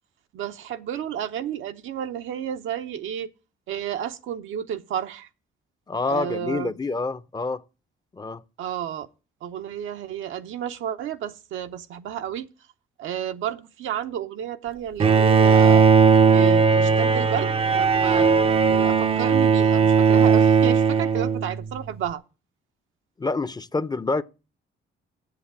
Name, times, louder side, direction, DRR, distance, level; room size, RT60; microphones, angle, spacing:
voice 1, 0.3-3.3 3.7-5.3 6.1-6.8 8.6-9.1 9.4-12.5 13.0-15.9 16.3-22.2, right 10 dB, 80° right, 0.9 m, -32 dB
voice 2, 5.9-7.6 8.1-8.4 23.2-24.2, left 3 dB, 20° left, 0.6 m, -27 dB
Bowed string instrument, 15.0-21.8, right 5 dB, 30° right, 0.5 m, -18 dB
7.9 x 7.7 x 8.7 m
cardioid pair, 90°, 20 cm